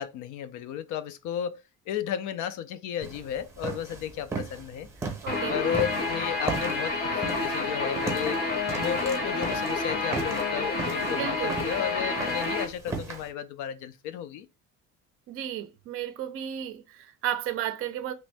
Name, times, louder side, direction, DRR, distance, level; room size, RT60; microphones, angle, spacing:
voice 1, 0.0-4.9 5.5-8.4 8.7-14.5, left 9 dB, 65° left, 0.5 m, -33 dB
sound 1, 3.0-13.3, right 4 dB, 10° right, 0.7 m, -37 dB
voice 2, 5.2-5.6 11.1-11.6 15.3-18.1, right 10 dB, 40° right, 0.5 m, -33 dB
Guitar, 5.3-12.6, left 3 dB, 30° left, 0.7 m, -29 dB
3.0 x 2.6 x 3.3 m
cardioid pair, 170°, 33 cm